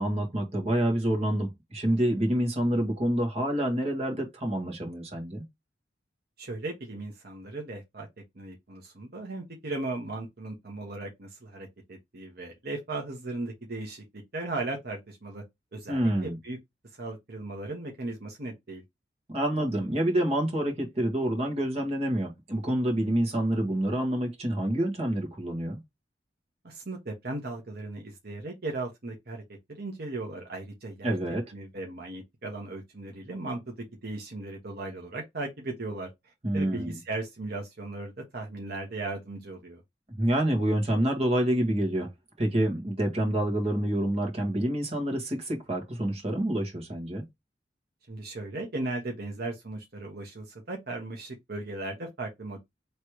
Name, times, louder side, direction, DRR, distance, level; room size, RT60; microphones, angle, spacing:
voice 1, 0.0-5.4 15.9-16.4 19.3-25.8 31.0-31.4 36.4-36.9 40.2-42.1 42.4-47.2, right 1 dB, 35° right, 1.7 m, -27 dB
voice 2, 6.4-8.1 8.3-14.0 14.3-15.4 15.7-16.6 17.0-18.8 26.6-29.4 29.7-31.1 31.5-33.7 34.0-36.1 36.5-39.8 48.1-52.6, right 2 dB, 60° right, 1.3 m, -37 dB
3.3 x 3.2 x 4.6 m
head